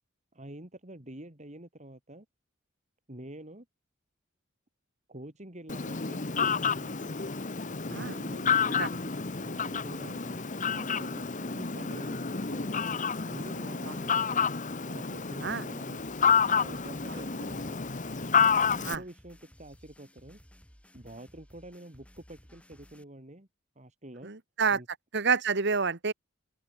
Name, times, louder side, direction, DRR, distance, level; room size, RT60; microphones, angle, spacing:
voice 1, 0.3-2.2 3.1-3.6 5.1-7.2 7.9-9.1 9.4-12.8 13.2-14.5 14.9-16.0 16.4-17.8 18.7-20.4 20.9-23.5 23.7-24.3 24.7-24.9, right 1 dB, 35° right, 3.2 m, -47 dB
Fowl, 5.7-19.0, left 6 dB, 40° left, 1.3 m, -29 dB
sound 1, 16.0-23.0, equal, 5° left, 4.2 m, -57 dB
voice 2, 24.2-24.8 25.1-26.1, right 5 dB, 60° right, 1.6 m, -28 dB
open air
head